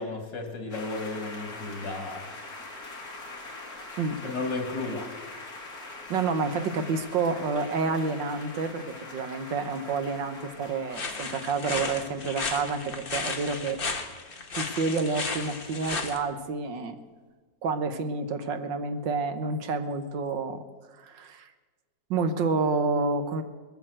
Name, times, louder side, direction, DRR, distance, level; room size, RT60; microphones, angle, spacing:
voice 1, 0.0-2.3 4.2-5.1, left 3 dB, 80° left, 3 dB, 2.7 m, -33 dB
sound 1, 0.7-12.7, left 2 dB, 55° left, 2.9 m, -43 dB
voice 2, 6.1-13.8 14.5-17.0 17.6-20.6 21.0-21.5 22.1-23.4, right 4 dB, 85° right, 8 dB, 1.9 m, -29 dB
sound 2, 10.9-16.2, left 4 dB, 35° left, 1.3 m, -34 dB
21.0 x 9.0 x 7.7 m, 1.4 s
omnidirectional pair, 1.9 m